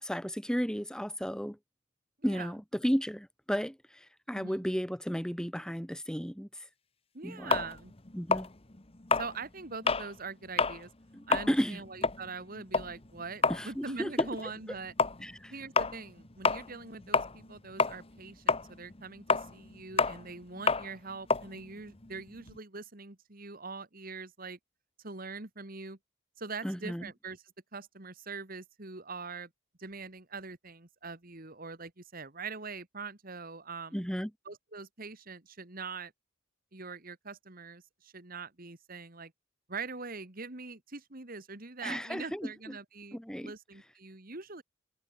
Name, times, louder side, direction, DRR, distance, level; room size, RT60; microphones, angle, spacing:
voice 1, 0.0-1.6 2.2-6.5 7.2-7.6 8.1-8.5 11.1-11.8 13.5-14.1 15.2-15.5 26.6-27.1 33.9-34.3 41.8-42.8 43.1-43.5, equal, 5° left, 4.0 m, -33 dB
voice 2, 2.2-2.5 4.3-4.6 7.1-7.9 9.1-10.9 11.3-14.9 15.5-24.6 25.0-26.0 26.4-27.4 27.7-29.5 29.8-34.0 34.5-36.1 36.7-39.3 39.7-44.6, right 4 dB, 45° right, 2.1 m, -43 dB
sound 1, 7.5-10.1 10.5-10.8 11.1-17.5 17.8-22.6, left 4 dB, 30° left, 1.3 m, -30 dB
head